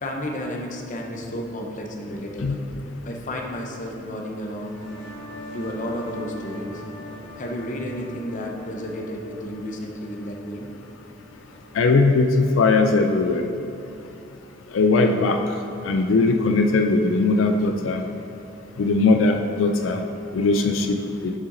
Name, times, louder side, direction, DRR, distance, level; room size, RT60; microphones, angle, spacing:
voice 1, 0.0-2.6 3.0-4.8 5.5-6.8 7.4-10.7, equal, 40° left, 1 dB, 0.8 m, -32 dB
sound 1, 4.5-11.9, equal, 60° left, 1.1 m, -41 dB
voice 2, 11.7-13.5 14.7-15.4 15.8-18.0 18.8-20.0 20.3-21.0 21.2-21.3, left 3 dB, 90° left, 5 dB, 0.4 m, -19 dB
6.7 x 5.7 x 3.9 m, 2.8 s
head